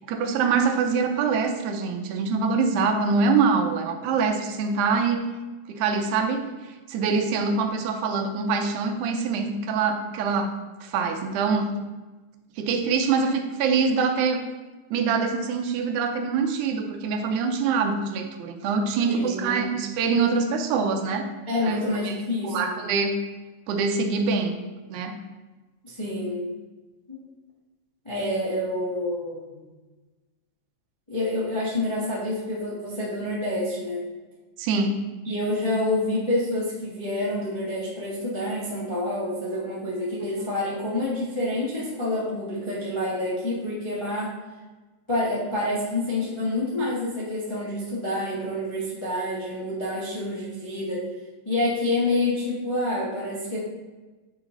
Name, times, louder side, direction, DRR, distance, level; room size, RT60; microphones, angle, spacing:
voice 1, 0.1-5.3 5.7-6.5 6.9-10.6 10.8-11.7 12.6-14.4 14.9-21.3 21.6-21.8 22.1-22.2 22.4-23.2 23.7-24.6 24.9-25.2 34.6-35.0, right 5 dB, 85° right, 5 dB, 2.1 m, -24 dB
voice 2, 19.1-19.7 21.5-22.7 25.8-26.5 27.1-27.2 28.0-29.6 31.1-34.1 35.2-44.3 45.1-51.0 51.4-53.6, left 1 dB, 30° left, -7 dB, 0.5 m, -28 dB
8.5 x 3.9 x 3.8 m, 1.2 s
omnidirectional pair, 3.4 m